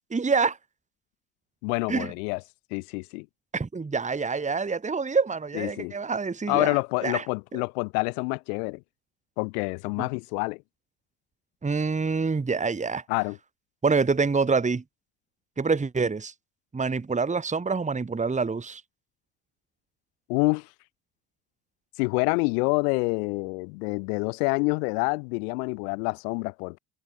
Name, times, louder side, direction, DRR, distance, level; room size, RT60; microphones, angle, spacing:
voice 1, 0.1-0.6 1.9-2.1 3.5-7.2 11.6-13.0 13.8-14.8 15.6-16.3 16.7-18.8, right 4 dB, 15° right, 1.7 m, -26 dB
voice 2, 1.6-2.4 2.7-3.3 5.5-6.0 6.5-8.8 9.4-10.6 13.1-13.4 20.3-20.7 22.0-26.8, left 32 dB, 65° left, 2.9 m, -27 dB
figure-of-eight pair, 55°, 49 cm